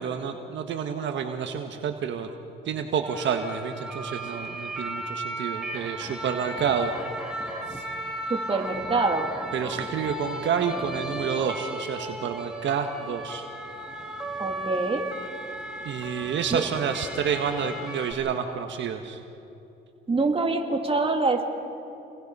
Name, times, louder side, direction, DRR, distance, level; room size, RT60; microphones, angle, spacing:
voice 1, 0.0-2.3 2.6-6.9 7.7-7.8 9.5-13.4 15.8-19.2, right 7 dB, 70° right, 5 dB, 1.4 m, -29 dB
sound 1, 3.0-18.1, right 1 dB, 5° right, 3.5 m, -35 dB
voice 2, 8.3-9.3 14.4-15.1 16.5-16.6 20.1-21.4, right 3 dB, 30° right, 3 dB, 2.7 m, -25 dB
29.0 x 21.0 x 5.5 m, 2.8 s
cardioid pair, 90°, 20 cm